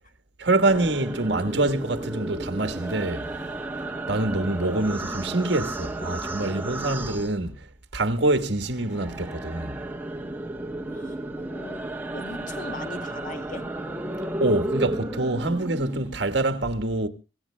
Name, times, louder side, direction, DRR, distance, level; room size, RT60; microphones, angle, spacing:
voice 1, 0.4-3.3 4.1-9.9 14.4-17.1, right 2 dB, 70° right, 1.4 m, -25 dB
sound 1, 0.6-8.0 8.2-16.3, right 2 dB, 10° right, 1.1 m, -33 dB
voice 2, 10.9-13.7, left 2 dB, 45° left, 2.0 m, -40 dB
25.5 x 17.0 x 2.2 m
head